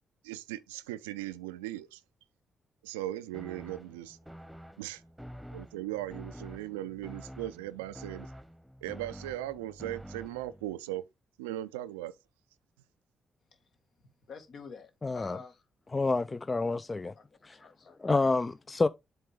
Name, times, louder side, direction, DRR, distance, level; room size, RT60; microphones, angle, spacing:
voice 1, 0.2-2.0 2.8-4.2 4.8-5.0 5.5-8.3 8.8-11.0 11.4-12.1, right 14 dB, 85° right, 0.4 m, -38 dB
sound 1, 3.3-10.7, equal, 5° right, 1.0 m, -48 dB
voice 2, 14.3-15.6 17.2-18.0, left 5 dB, 65° left, 1.7 m, -48 dB
voice 3, 15.0-15.4 15.9-17.1 17.4-17.6 18.0-18.9, left 3 dB, 30° left, 0.4 m, -28 dB
7.8 x 3.5 x 4.9 m
hypercardioid pair, 40°, 0 cm